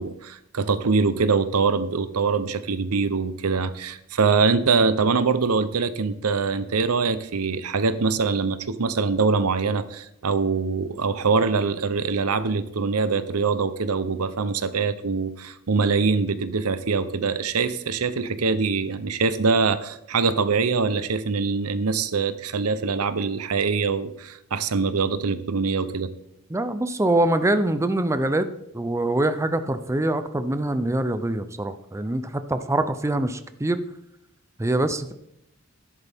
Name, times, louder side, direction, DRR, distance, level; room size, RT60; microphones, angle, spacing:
voice 1, 0.0-26.1, right 4 dB, 90° right, 13 dB, 0.8 m, -23 dB
voice 2, 26.5-28.5 28.7-33.8 34.6-35.1, right 1 dB, 15° right, 10 dB, 0.5 m, -24 dB
12.5 x 11.0 x 3.6 m, 0.79 s
head